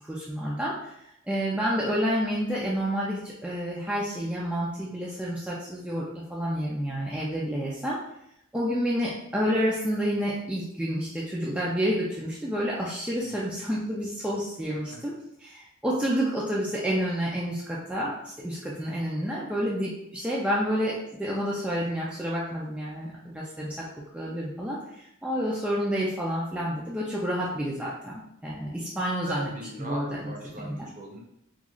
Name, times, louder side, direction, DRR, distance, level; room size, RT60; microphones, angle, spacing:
voice 1, 0.0-8.0 8.5-15.1 15.4-29.5 29.8-30.3 30.6-30.8, equal, 5° right, -6 dB, 0.4 m, -29 dB
voice 2, 29.2-31.2, right 1 dB, 35° right, -1 dB, 0.7 m, -39 dB
3.0 x 2.4 x 3.7 m, 0.78 s
head